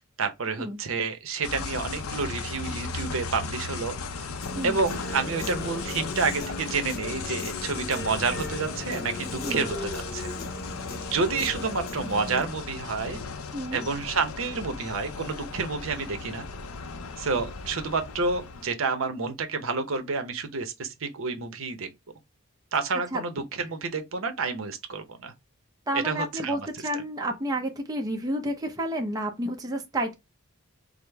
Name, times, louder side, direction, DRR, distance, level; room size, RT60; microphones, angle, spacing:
voice 1, 0.2-4.3 4.6-10.3 11.1-13.2 13.7-16.5 17.2-21.9 22.7-25.3 25.9-26.7 26.9-27.0, right 4 dB, 65° right, 0.7 m, -29 dB
sound 1, 1.4-18.7, left 4 dB, 85° left, 0.5 m, -36 dB
Human voice / Guitar, 4.4-12.4, left 1 dB, 45° left, 0.8 m, -37 dB
voice 2, 25.9-30.1, right 1 dB, 15° right, 0.5 m, -30 dB
4.9 x 2.0 x 3.4 m
head